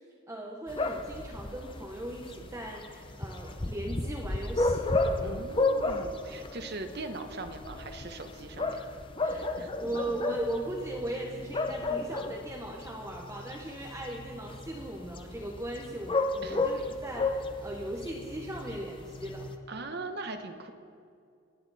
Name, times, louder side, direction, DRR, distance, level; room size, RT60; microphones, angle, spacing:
voice 1, 0.3-4.9 8.8-8.9 9.2-9.5 9.8-19.5, right 1 dB, 15° right, 0 dB, 1.0 m, -38 dB
sound 1, 0.7-19.6, left 2 dB, 25° left, 0.7 m, -33 dB
voice 2, 5.2-8.8 9.6-9.8 16.4-16.7 19.7-20.7, right 2 dB, 50° right, 6 dB, 1.1 m, -40 dB
25.0 x 9.5 x 4.2 m, 2.3 s
head